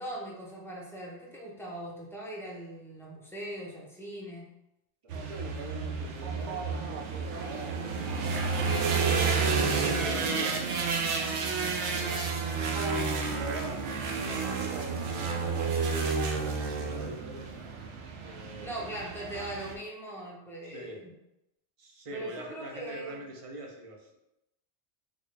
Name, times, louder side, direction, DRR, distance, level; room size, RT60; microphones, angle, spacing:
voice 1, 0.0-4.5 12.7-13.1 18.6-21.1 22.1-23.3, right 1 dB, 5° left, -4 dB, 0.5 m, -40 dB
voice 2, 5.0-9.1 9.4-11.0 11.8-12.4 12.9-13.9 14.2-17.6 18.2-18.9 20.6-21.0 21.8-24.2, right 1 dB, 50° right, 1 dB, 0.4 m, -44 dB
sound 1, 5.1-19.7, right 4 dB, 80° right, 0.9 m, -30 dB
3.6 x 2.4 x 3.2 m, 0.88 s
omnidirectional pair, 1.2 m